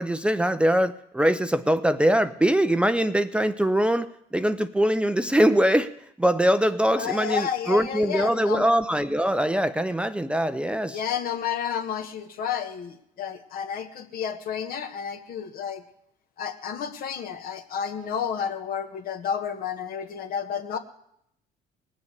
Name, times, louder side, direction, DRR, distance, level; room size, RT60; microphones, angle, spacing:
voice 1, 0.0-5.9 6.2-11.0, equal, 5° right, 10 dB, 0.5 m, -22 dB
voice 2, 6.9-8.6 10.8-15.8 16.4-20.8, left 8 dB, 60° left, 8 dB, 1.5 m, -31 dB
19.0 x 7.1 x 8.3 m, 0.76 s
cardioid pair, 95°, 17 cm